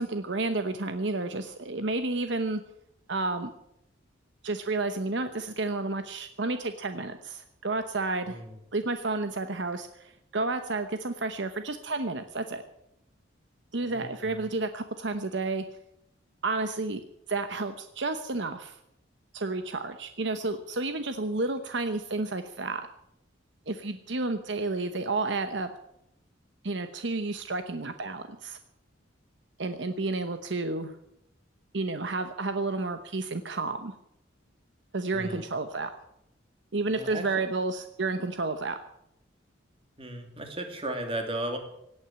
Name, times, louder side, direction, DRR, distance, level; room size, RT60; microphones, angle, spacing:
voice 1, 0.0-2.6 3.1-3.5 4.4-8.4 8.7-12.6 13.7-15.6 16.4-17.0 17.3-18.8 19.3-22.9 23.7-25.7 26.6-28.6 29.6-30.9 31.7-33.9 34.9-35.9 36.7-38.8, right 3 dB, 65° right, 8 dB, 1.0 m, -31 dB
voice 2, 8.3-8.6 13.8-14.5 35.1-35.5 36.9-37.3 40.0-41.6, right 1 dB, 30° right, 4 dB, 2.8 m, -36 dB
17.5 x 9.1 x 8.7 m, 0.78 s
head